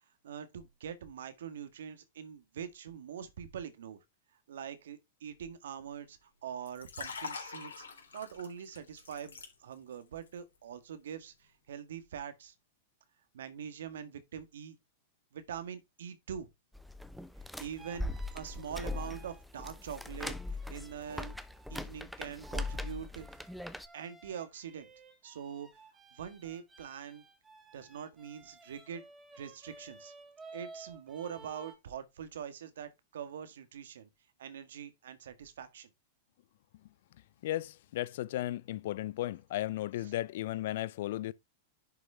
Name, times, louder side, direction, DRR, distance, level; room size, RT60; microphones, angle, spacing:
voice 1, 0.2-4.0 4.5-7.9 8.1-12.5 13.3-14.8 15.3-16.5 17.6-21.3 21.7-23.3 23.9-24.9 25.2-25.7 26.1-27.2 27.7-29.0 29.3-30.1 30.5-34.1 34.4-35.9 40.0-40.1, right 8 dB, 70° right, 1.8 m, -43 dB
Liquid, 6.6-10.0 10.3-10.6, left 5 dB, 80° left, 3.4 m, -44 dB
sound 1, 16.7-23.9, left 2 dB, ahead, 0.9 m, -40 dB
sound 2, 17.7-21.8 22.4-31.7, right 3 dB, 15° right, 3.1 m, -55 dB
voice 2, 37.4-41.3, left 14 dB, 60° left, 0.6 m, -35 dB
10.5 x 6.1 x 3.5 m
hypercardioid pair, 100°, 0 cm